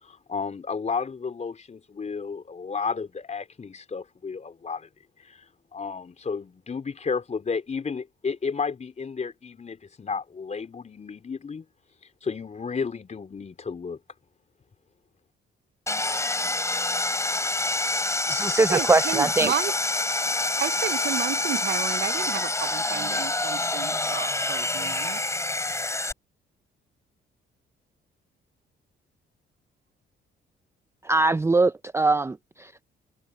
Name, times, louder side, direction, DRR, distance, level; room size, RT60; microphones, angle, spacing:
voice 1, 0.0-4.9 5.2-5.4 5.7-11.6 12.2-14.0, left 5 dB, 35° left, 4.0 m, -32 dB
Sawing, 15.9-26.1, left 2 dB, 15° left, 3.2 m, -27 dB
voice 2, 18.0-19.5 31.0-32.8, right 3 dB, 15° right, 0.5 m, -22 dB
voice 3, 18.7-19.7 20.6-25.2, right 11 dB, 65° right, 0.7 m, -32 dB
cardioid pair, 90°, 20 cm